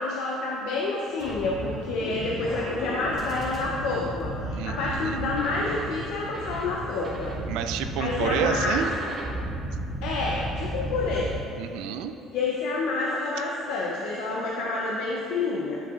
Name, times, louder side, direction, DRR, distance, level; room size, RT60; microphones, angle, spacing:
voice 1, 0.0-7.4 8.0-8.8 10.0-11.3 12.3-15.8, left 3 dB, 90° left, -3 dB, 0.6 m, -28 dB
sound 1, 1.2-11.4, right 1 dB, 25° right, 1.4 m, -34 dB
voice 2, 4.5-5.3 7.5-8.9 11.6-12.2, right 8 dB, 85° right, 9 dB, 0.3 m, -30 dB
8.8 x 5.3 x 2.4 m, 2.7 s
cardioid pair, 155°, 0 cm